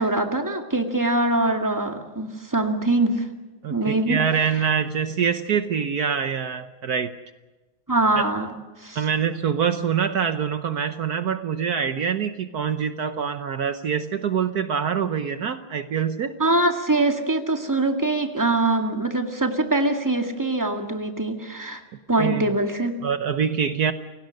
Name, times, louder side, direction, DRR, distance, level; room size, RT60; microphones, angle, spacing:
voice 1, 0.0-3.3 3.7-4.2 7.9-8.5 8.8-9.0 16.4-21.8 22.1-22.9, right 2 dB, 10° right, 5 dB, 2.0 m, -23 dB
voice 2, 3.6-7.1 8.9-16.4 22.2-22.4 23.0-23.9, right 7 dB, 60° right, 10 dB, 1.3 m, -25 dB
29.5 x 17.5 x 6.5 m, 1.2 s
omnidirectional pair, 2.2 m